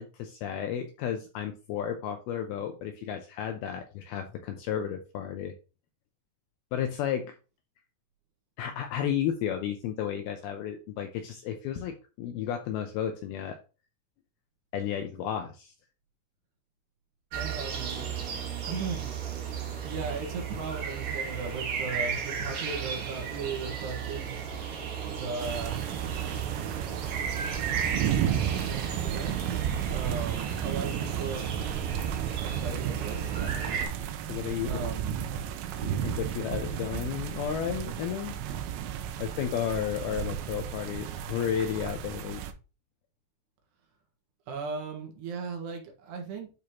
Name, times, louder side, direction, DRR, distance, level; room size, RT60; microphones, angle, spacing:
voice 1, 0.0-5.5 6.7-7.2 8.6-13.6 14.7-15.7 34.3-34.9 35.8-38.4 39.2-42.4, left 9 dB, 80° left, 5 dB, 2.3 m, -33 dB
sound 1, 17.3-33.9, right 7 dB, 55° right, 2.5 m, -35 dB
voice 2, 17.4-18.0 18.7-19.0 19.4-24.4 25.0-25.9 28.5-31.6 32.4-33.9 34.6-35.2 44.5-46.5, right 4 dB, 70° right, 2 dB, 3.5 m, -37 dB
sound 2, 25.4-42.5, right 9 dB, 85° right, 3.0 m, -33 dB
10.5 x 4.9 x 2.9 m, 0.33 s
omnidirectional pair, 5.2 m